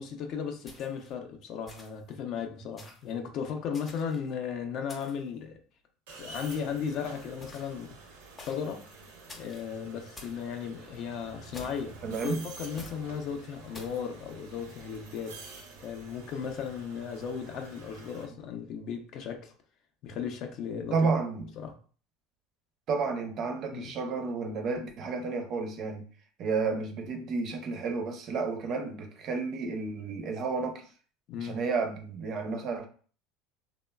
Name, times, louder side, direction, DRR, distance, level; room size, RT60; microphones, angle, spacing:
voice 1, 0.0-5.6 6.1-7.9 8.4-8.8 9.3-15.4 15.8-19.5 20.0-21.0 21.6-21.7 23.7-23.9 31.3-31.6, left 7 dB, 50° left, 0.5 m, -36 dB
sound 1, 0.7-1.1 1.7-2.1 2.8-3.1 3.7-4.3 4.9-5.3 6.5-6.9 7.4-7.8 8.4-8.7 9.3-9.7 10.2-10.4 11.5-12.0 12.8-13.0 13.7-14.0, left 2 dB, 20° left, 0.7 m, -48 dB
sound 2, 6.1-18.2, right 3 dB, 90° right, 0.7 m, -49 dB
voice 2, 12.0-12.4 20.9-21.5 22.9-26.0 26.4-30.8 31.4-32.9, right 4 dB, 45° right, 0.5 m, -31 dB
3.0 x 2.1 x 2.2 m
supercardioid pair, 130°, 0 cm